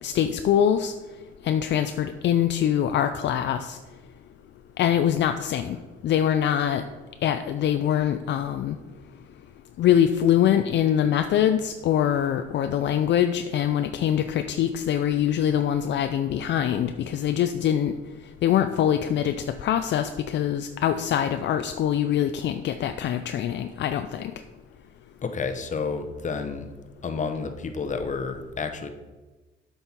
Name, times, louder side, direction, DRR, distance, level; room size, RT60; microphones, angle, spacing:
voice 1, 0.0-0.9 1.4-3.8 4.8-5.8 6.0-6.8 7.2-8.8 9.8-17.9 18.4-24.3, left 10 dB, 65° left, 8 dB, 0.4 m, -23 dB
voice 2, 25.2-26.7 27.0-28.9, left 5 dB, 40° left, 7 dB, 0.9 m, -30 dB
7.8 x 5.5 x 4.4 m, 1.2 s
cardioid pair, 90°, 20 cm